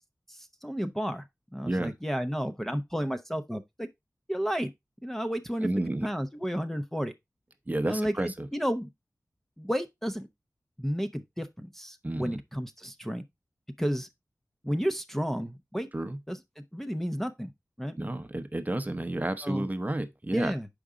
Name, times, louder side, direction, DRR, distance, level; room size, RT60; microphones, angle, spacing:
voice 1, 0.3-1.3 1.5-3.9 4.3-4.7 5.0-5.7 6.0-7.1 7.9-8.9 9.6-10.3 10.8-13.2 13.8-14.1 14.6-15.9 16.3-17.5 17.8-17.9 19.4-19.7 20.3-20.7, equal, 5° left, 0.7 m, -32 dB
voice 2, 5.6-6.1 7.7-8.5 12.0-12.4 15.9-16.2 18.0-20.5, right 1 dB, 30° right, 0.8 m, -31 dB
6.8 x 5.0 x 3.7 m
wide cardioid pair, 75°, 6 cm